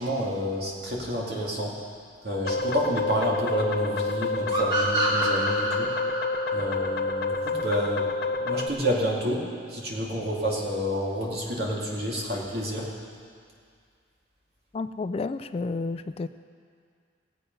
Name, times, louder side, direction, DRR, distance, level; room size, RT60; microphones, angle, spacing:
voice 1, 0.0-1.7 2.2-5.9 6.5-8.1 8.4-12.9, equal, 60° right, -4 dB, 2.7 m, -29 dB
sound 1, 2.4-8.7, left 3 dB, 55° left, 0.7 m, -28 dB
sound 2, 4.5-7.9, right 2 dB, 25° right, 2.6 m, -28 dB
voice 2, 14.7-16.3, left 3 dB, 35° left, 11 dB, 0.3 m, -31 dB
19.0 x 8.2 x 5.5 m, 2.2 s
head